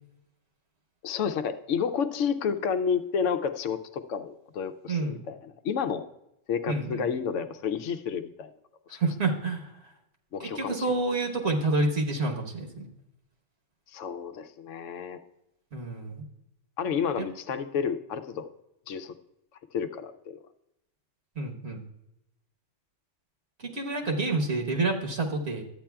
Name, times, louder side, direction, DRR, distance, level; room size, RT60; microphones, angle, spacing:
voice 1, 1.0-6.1 6.5-8.5 8.9-9.0 10.3-10.8 13.9-15.2 16.8-18.5 18.9-19.1 19.7-20.4, left 6 dB, 85° left, 9 dB, 1.0 m, -30 dB
voice 2, 4.9-5.2 6.7-7.1 8.9-9.7 10.4-12.9 15.7-16.2 17.2-17.3 21.4-21.8 23.6-25.6, right 2 dB, 65° right, 1 dB, 1.3 m, -28 dB
12.5 x 8.6 x 2.3 m, 0.85 s
omnidirectional pair, 1.3 m